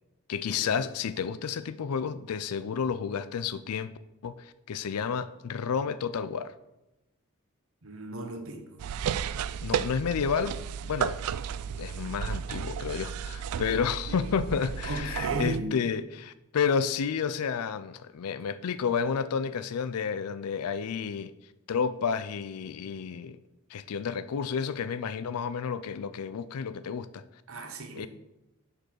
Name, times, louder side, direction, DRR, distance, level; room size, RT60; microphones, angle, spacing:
voice 1, 0.3-3.9 4.2-6.5 9.6-10.5 10.8-11.2 11.8-21.3 21.7-23.4 23.7-27.2 28.0-28.1, left 6 dB, 80° left, 0.4 m, -31 dB
voice 2, 7.8-8.8 14.8-15.8 27.5-28.1, right 2 dB, 65° right, 1.1 m, -36 dB
sound 1, 8.8-15.6, right 8 dB, 80° right, 0.3 m, -33 dB
7.5 x 4.7 x 6.4 m
head